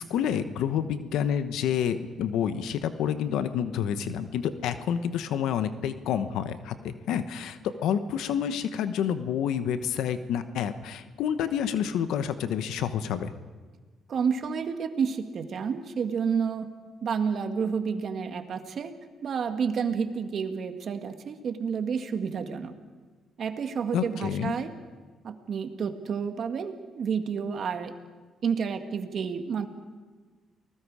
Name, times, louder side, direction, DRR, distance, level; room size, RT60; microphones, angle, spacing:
voice 1, 0.0-13.3 23.9-24.5, left 8 dB, 85° left, 11 dB, 1.0 m, -29 dB
voice 2, 14.1-16.7 17.0-18.9 19.2-22.7 23.4-24.7 25.2-27.9 28.4-29.7, right 6 dB, 60° right, 6 dB, 1.9 m, -30 dB
30.0 x 20.0 x 4.9 m, 1.4 s
cardioid pair, 90°, 0 cm